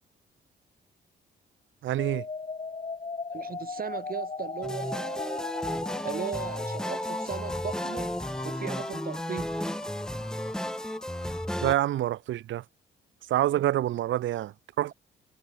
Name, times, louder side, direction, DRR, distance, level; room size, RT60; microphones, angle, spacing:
voice 1, 1.8-2.2 11.6-12.6 13.3-14.9, right 13 dB, 75° right, 1.2 m, -27 dB
sound 1, 2.0-12.0, left 4 dB, 30° left, 6.0 m, -39 dB
voice 2, 3.3-8.1 8.4-9.5 13.5-13.6, right 7 dB, 45° right, 6.1 m, -37 dB
sound 2, 4.6-11.7, equal, 5° left, 2.6 m, -34 dB
cardioid pair, 90°, 20 cm